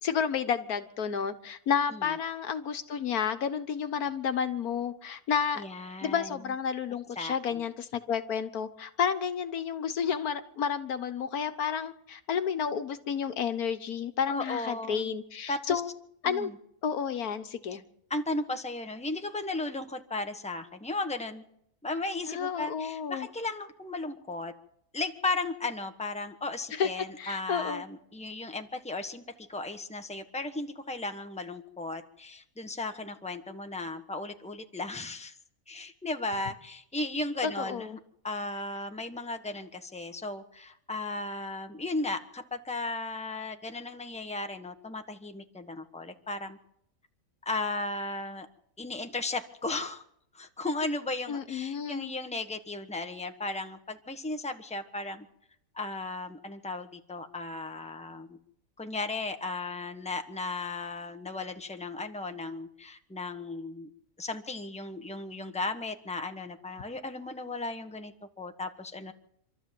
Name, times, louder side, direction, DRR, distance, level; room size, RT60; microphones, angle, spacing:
voice 1, 0.0-5.6 6.0-15.9 16.2-16.5 16.8-17.8 22.3-23.3 26.7-26.9 27.2-27.8 37.4-38.0 51.3-52.1, left 7 dB, 75° left, 10 dB, 1.6 m, -31 dB
voice 2, 5.6-6.4 7.1-7.6 14.3-15.1 15.5-15.8 16.2-16.5 18.1-21.4 21.8-24.5 24.9-35.4 35.7-37.9 38.2-46.6 47.4-48.5 48.8-50.0 50.3-55.3 55.7-58.4 58.8-63.9 64.2-69.1, left 2 dB, 5° left, 6 dB, 1.3 m, -35 dB
26.5 x 13.5 x 7.7 m, 0.74 s
omnidirectional pair, 1.6 m